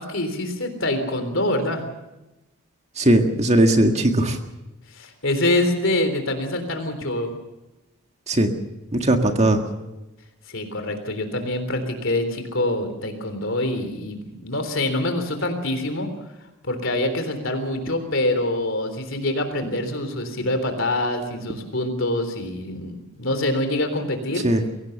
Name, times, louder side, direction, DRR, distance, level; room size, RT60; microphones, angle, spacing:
voice 1, 0.0-1.8 4.9-7.3 10.5-16.1 16.6-24.5, left 1 dB, 55° left, 8 dB, 3.6 m, -25 dB
voice 2, 2.9-4.4 8.3-8.5 8.9-9.6 24.4-24.6, right 1 dB, 30° right, 4 dB, 1.8 m, -18 dB
23.0 x 17.5 x 6.9 m, 0.98 s
head